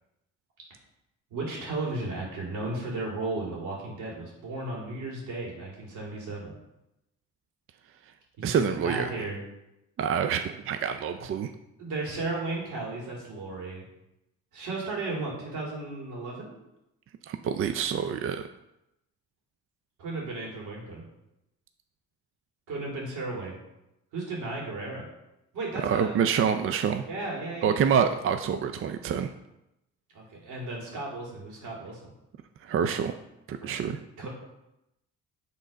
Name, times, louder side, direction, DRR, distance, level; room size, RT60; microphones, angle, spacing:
voice 1, 1.3-6.5 8.4-9.4 11.8-13.8 14.5-16.5 20.0-21.0 22.7-23.6 24.1-25.0 25.5-26.2 27.1-27.8 30.1-32.0 33.6-33.8 34.2-34.3, right 2 dB, 85° right, -3 dB, 2.6 m, -34 dB
voice 2, 8.4-9.1 10.0-11.5 17.3-18.5 25.8-27.1 27.6-29.3 32.6-33.1 33.5-34.0, right 7 dB, 45° right, 8 dB, 0.4 m, -27 dB
7.6 x 3.8 x 5.1 m, 0.89 s
cardioid pair, 90°, 30 cm